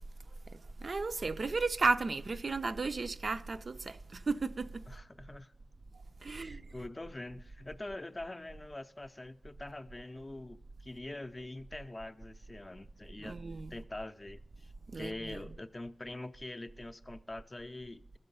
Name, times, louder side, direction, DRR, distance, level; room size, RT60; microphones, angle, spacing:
voice 1, 0.5-4.9 6.2-6.7 13.2-13.7 14.9-15.4, right 3 dB, 60° right, 0.4 m, -34 dB
voice 2, 4.9-5.5 6.3-13.4 13.7-18.2, left 2 dB, 30° left, 0.5 m, -44 dB
14.0 x 6.7 x 5.4 m
cardioid pair, 60°, 0 cm